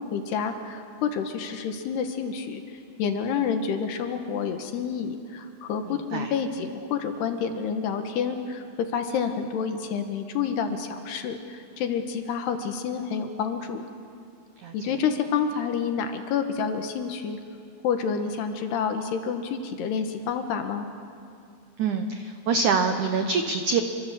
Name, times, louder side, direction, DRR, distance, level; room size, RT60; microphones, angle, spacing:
voice 1, 0.0-8.6 8.9-13.8 14.7-17.4 17.8-20.9, left 6 dB, 70° left, 6 dB, 3.3 m, -29 dB
voice 2, 5.9-6.3 14.6-14.9 21.8-23.8, right 5 dB, 75° right, 6 dB, 1.8 m, -25 dB
27.0 x 24.5 x 7.6 m, 2.4 s
omnidirectional pair, 5.2 m